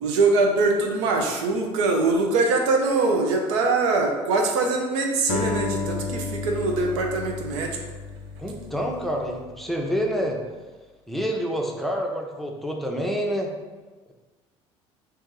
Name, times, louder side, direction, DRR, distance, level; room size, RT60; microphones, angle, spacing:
voice 1, 0.0-7.7, right 3 dB, 80° right, 2 dB, 0.5 m, -23 dB
Acoustic guitar, 5.3-9.7, left 4 dB, 60° left, 0.5 m, -32 dB
voice 2, 8.4-10.4 11.1-13.5, equal, ahead, 0 dB, 0.6 m, -27 dB
2.6 x 2.6 x 3.8 m, 1.3 s
hypercardioid pair, 65°, 15 cm